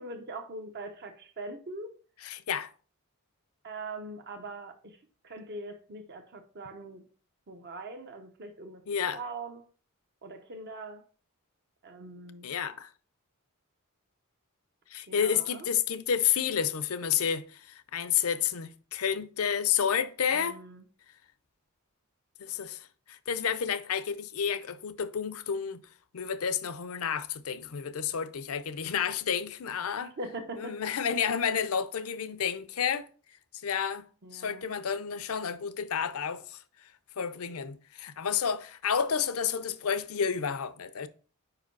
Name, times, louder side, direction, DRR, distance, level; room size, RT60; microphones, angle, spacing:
voice 1, 0.0-1.9 3.6-4.7 5.2-7.0 7.5-8.8 9.2-9.6 10.2-11.0 11.8-12.5 15.1-15.7 20.3-20.8 30.0-30.7 34.2-34.7, right 2 dB, 50° right, 0.7 m, -42 dB
voice 2, 2.2-2.7 8.9-9.2 12.4-12.9 14.9-20.6 22.4-25.8 26.1-30.1 30.6-33.1 33.6-34.0 34.3-36.6 37.2-41.1, left 7 dB, 75° left, 0.6 m, -30 dB
5.1 x 4.9 x 4.5 m
head